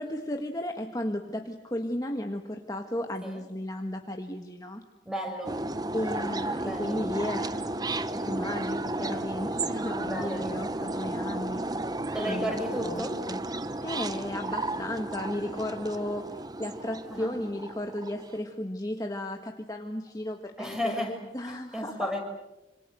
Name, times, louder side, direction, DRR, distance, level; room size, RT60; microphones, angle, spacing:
voice 1, 0.0-4.8 5.9-7.7 8.0-11.6 12.2-12.6 12.8-13.5 13.8-22.1, left 1 dB, 20° left, 4 dB, 1.6 m, -34 dB
voice 2, 5.0-5.6 6.6-7.0 10.0-10.9 12.1-13.3 17.1-17.3 20.6-21.2 21.7-22.2, equal, 5° right, 3 dB, 6.3 m, -33 dB
sound 1, 5.4-18.3, right 2 dB, 20° right, 0.9 m, -33 dB
26.5 x 26.5 x 8.0 m, 0.97 s
head